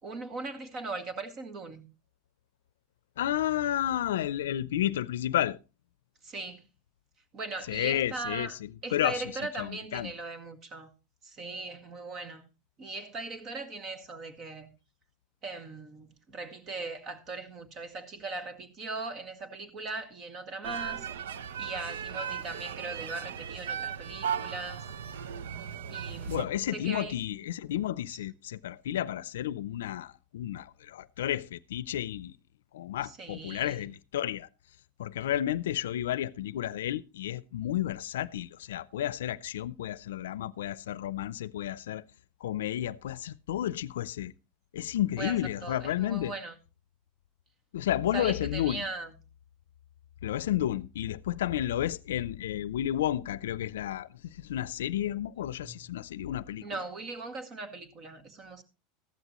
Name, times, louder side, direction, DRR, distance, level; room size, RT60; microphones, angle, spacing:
voice 1, 0.0-1.9 6.2-6.6 7.3-8.5 8.8-10.9 11.2-12.4 12.8-14.7 15.4-21.1 21.6-24.9 25.9-27.1 28.1-28.2 33.0-33.9 45.2-46.5 48.1-49.1 55.6-55.7 56.6-58.6, right 3 dB, 45° right, 2.0 m, -39 dB
voice 2, 3.2-5.6 7.6-10.1 26.3-32.3 32.7-34.5 35.0-42.0 42.4-44.3 44.7-46.4 47.7-48.9 50.2-56.9, left 12 dB, 90° left, 0.5 m, -32 dB
sound 1, 20.6-26.4, right 8 dB, 90° right, 0.7 m, -37 dB
14.5 x 12.5 x 3.0 m
supercardioid pair, 110°, 0 cm